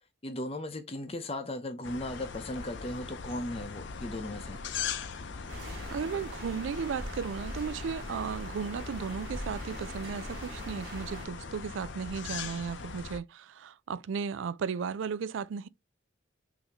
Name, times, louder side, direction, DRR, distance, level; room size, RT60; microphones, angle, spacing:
voice 1, 0.2-4.6, left 1 dB, 30° left, 0.7 m, -37 dB
sound 1, 1.8-13.2, left 5 dB, 70° left, 0.6 m, -40 dB
sound 2, 5.5-11.3, equal, 55° right, 2.2 m, -42 dB
voice 2, 5.9-15.7, right 6 dB, 75° right, 0.4 m, -35 dB
5.6 x 2.8 x 2.9 m
head